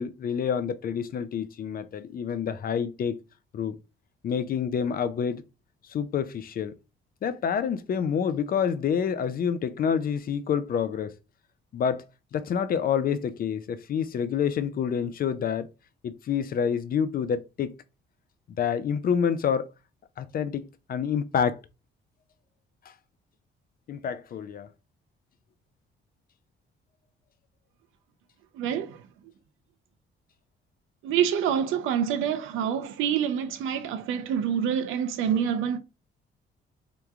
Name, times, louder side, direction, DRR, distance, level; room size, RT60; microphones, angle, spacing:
voice 1, 0.0-3.2 3.5-3.8 4.2-5.4 5.9-6.7 7.2-11.1 11.7-12.1 12.3-15.7 16.0-17.7 18.6-19.6 20.2-21.6 23.9-24.7, left 7 dB, 45° left, 0.4 m, -28 dB
voice 2, 28.5-29.0 31.0-35.8, right 8 dB, 90° right, 0.5 m, -26 dB
3.5 x 2.9 x 2.3 m
cardioid pair, 90°, 20 cm